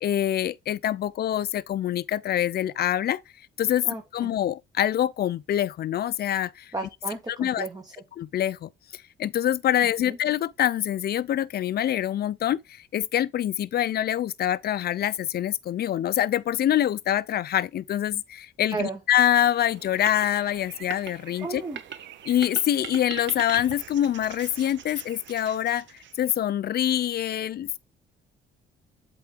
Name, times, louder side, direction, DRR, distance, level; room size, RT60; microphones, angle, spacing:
voice 1, 0.0-3.2 3.6-3.9 4.1-6.7 7.3-7.7 8.1-21.6 22.3-27.8, left 11 dB, 55° left, 0.4 m, -25 dB
voice 2, 3.8-4.3 6.7-7.8 10.0-10.2 18.7-19.0 21.4-21.8, right 4 dB, 20° right, 1.2 m, -33 dB
sound 1, 19.4-26.4, right 10 dB, 70° right, 0.6 m, -42 dB
7.9 x 3.8 x 3.7 m
cardioid pair, 90°, 20 cm